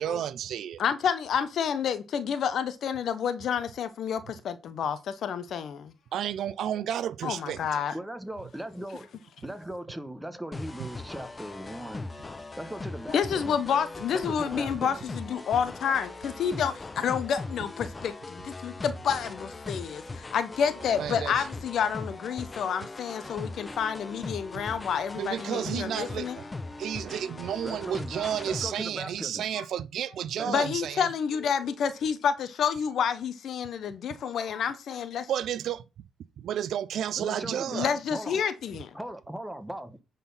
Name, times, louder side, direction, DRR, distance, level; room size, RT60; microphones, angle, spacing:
voice 1, 0.0-0.8 6.1-7.6 21.0-21.4 25.2-26.3 26.8-31.1 35.3-35.8 36.4-37.9, right 10 dB, 70° right, 0.5 m, -31 dB
voice 2, 0.8-5.9 7.2-8.0 13.1-26.4 29.6-29.7 30.5-35.3 37.7-39.0, left 7 dB, 65° left, 1.0 m, -29 dB
voice 3, 7.9-9.1 9.4-12.1 12.6-13.6 14.1-15.0 27.6-29.5 30.4-30.6 37.2-38.4 38.9-40.0, right 1 dB, 5° right, 1.2 m, -39 dB
sound 1, 10.5-28.8, left 3 dB, 25° left, 0.8 m, -40 dB
9.8 x 4.2 x 5.6 m
cardioid pair, 90°, 0 cm